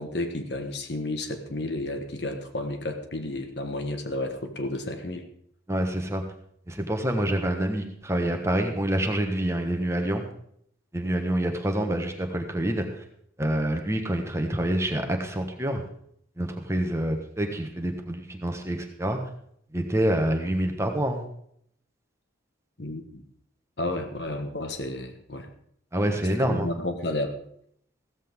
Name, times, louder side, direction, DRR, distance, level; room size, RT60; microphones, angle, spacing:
voice 1, 0.0-5.3 22.8-23.2 23.8-25.5 26.3-27.4, left 1 dB, 60° left, 6 dB, 1.4 m, -32 dB
voice 2, 5.7-6.2 6.7-10.3 10.9-13.0 13.4-15.8 16.4-19.2 19.7-21.2 25.9-26.7, right 1 dB, 15° right, 4 dB, 1.3 m, -27 dB
15.5 x 14.0 x 3.7 m, 0.68 s
head